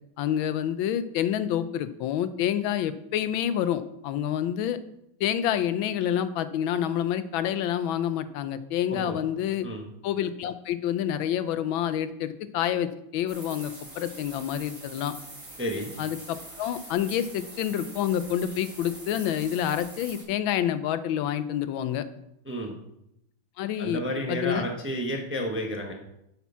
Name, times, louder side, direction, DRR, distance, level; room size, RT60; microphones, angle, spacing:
voice 1, 0.2-4.8 5.2-9.7 10.0-15.1 16.0-22.0 23.6-24.0 24.3-24.6, left 10 dB, 80° left, 12 dB, 1.4 m, -28 dB
sound 1, 13.3-20.2, right 1 dB, 40° right, 3.1 m, -44 dB
voice 2, 15.6-15.9 22.4-22.7 23.8-25.9, equal, 10° right, 1 dB, 0.6 m, -31 dB
8.4 x 5.9 x 5.6 m, 0.80 s
omnidirectional pair, 2.2 m